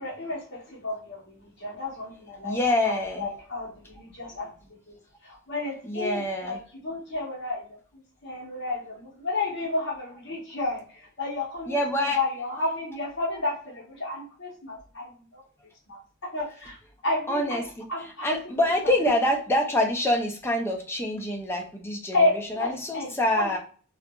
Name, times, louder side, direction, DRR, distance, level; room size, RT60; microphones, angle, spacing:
voice 1, 0.0-2.6 2.8-4.5 4.9-5.0 5.2-6.6 6.8-7.7 8.2-15.4 15.9-16.8 17.0-17.6 17.9-18.3 22.1-23.6, left 2 dB, 55° left, -4 dB, 0.9 m, -31 dB
voice 2, 2.4-3.3 5.8-6.6 11.7-12.2 17.3-23.6, left 1 dB, 10° left, 2 dB, 0.4 m, -26 dB
2.7 x 2.3 x 2.3 m, 0.43 s
head